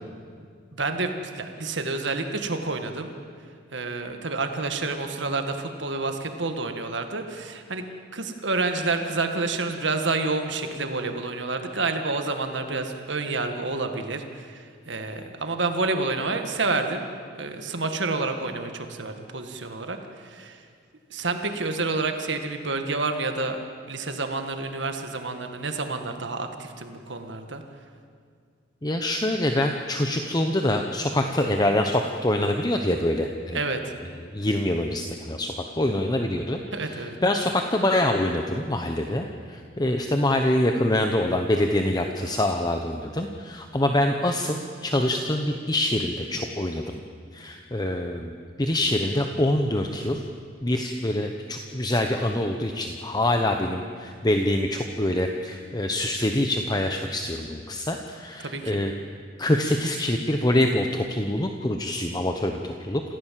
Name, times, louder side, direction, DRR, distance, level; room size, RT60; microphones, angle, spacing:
voice 1, 0.7-3.1 3.7-7.8 8.1-17.0 17.3-20.6 21.1-23.6 23.9-27.6 33.5-33.9 36.7-37.2 58.4-58.8, right 3 dB, 70° right, 6 dB, 1.8 m, -29 dB
voice 2, 28.8-33.6 34.3-47.0 47.3-48.3 48.6-50.2 50.6-58.9 59.4-63.0, left 1 dB, 20° left, 4 dB, 1.0 m, -25 dB
27.5 x 15.5 x 7.6 m, 2.1 s
head